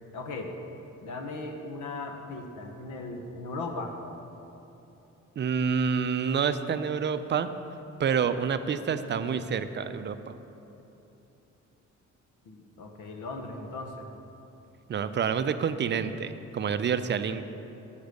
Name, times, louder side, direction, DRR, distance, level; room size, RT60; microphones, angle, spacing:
voice 1, 0.1-0.5 1.0-3.9 12.4-14.1, left 2 dB, 80° left, 4 dB, 1.1 m, -37 dB
voice 2, 5.4-7.5 8.0-10.4 14.9-17.4, right 6 dB, 40° right, 11 dB, 0.4 m, -28 dB
7.2 x 6.8 x 6.4 m, 3.0 s
cardioid pair, 90°, 30 cm